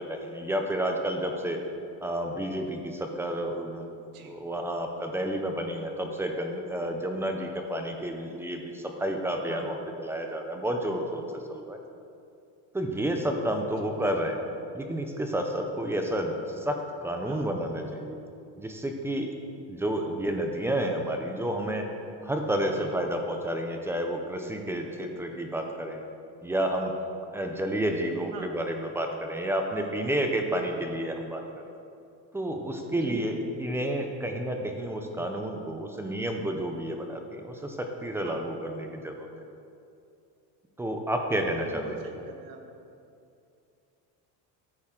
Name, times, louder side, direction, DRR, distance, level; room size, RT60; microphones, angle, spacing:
voice 1, 0.0-1.6 2.0-3.9 4.2-11.8 12.7-14.4 14.7-18.2 18.6-19.4 19.7-21.8 22.2-26.0 26.4-26.9 27.3-31.4 32.3-39.3 40.8-42.0, right 1 dB, 5° right, 3 dB, 0.3 m, -30 dB
voice 2, 33.0-33.6 38.2-38.5 41.6-42.6, right 5 dB, 55° right, 4 dB, 1.4 m, -42 dB
14.0 x 8.7 x 3.7 m, 2.6 s
cardioid pair, 175°, 42 cm